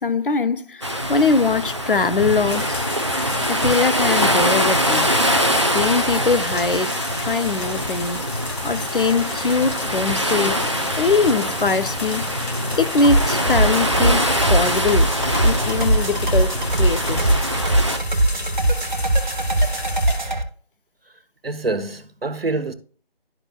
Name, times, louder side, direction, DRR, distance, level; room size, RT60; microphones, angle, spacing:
voice 1, 0.0-2.8 3.5-5.2 5.7-8.3 8.6-12.3 12.8-15.1 15.4-17.3, left 4 dB, 60° left, 0.5 m, -22 dB
sound 1, 0.8-18.0, equal, 30° right, 0.5 m, -23 dB
sound 2, 2.5-20.2, left 3 dB, 85° left, 0.9 m, -34 dB
sound 3, 13.0-20.4, right 1 dB, 50° right, 1.2 m, -21 dB
voice 2, 21.4-22.7, right 3 dB, 70° right, 1.0 m, -26 dB
12.0 x 4.7 x 2.3 m
figure-of-eight pair, 160°, 31 cm